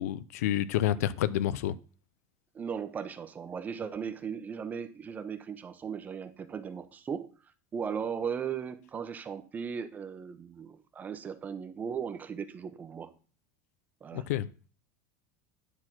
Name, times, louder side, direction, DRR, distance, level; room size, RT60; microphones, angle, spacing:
voice 1, 0.0-1.8 14.1-14.5, left 12 dB, 90° left, 0.6 m, -29 dB
voice 2, 2.5-7.3 7.7-13.1 14.0-14.3, right 7 dB, 20° right, 0.8 m, -37 dB
10.0 x 4.3 x 6.1 m
supercardioid pair, 150°, 8 cm